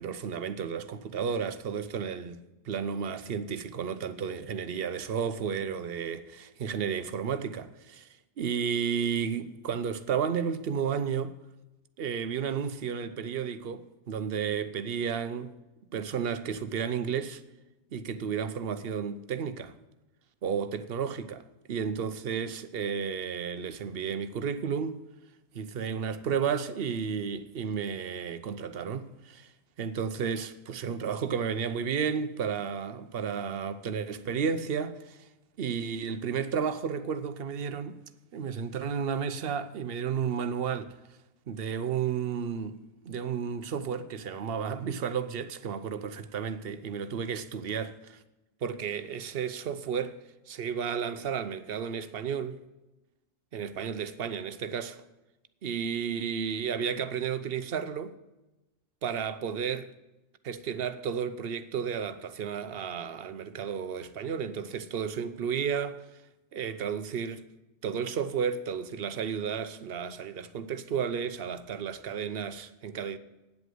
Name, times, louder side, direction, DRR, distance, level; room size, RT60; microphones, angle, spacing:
voice 1, 0.0-8.1 8.4-11.3 12.0-15.6 15.9-17.4 17.9-19.7 20.4-25.0 25.5-29.5 29.8-35.3 35.6-38.0 38.3-41.0 41.5-42.8 43.1-48.2 48.6-50.2 50.5-52.6 53.5-55.0 55.6-58.1 59.0-59.9 60.4-66.0 66.5-67.4 67.8-73.2, right 7 dB, 55° right, 0.9 m, -32 dB
9.4 x 8.1 x 7.8 m
omnidirectional pair, 1.3 m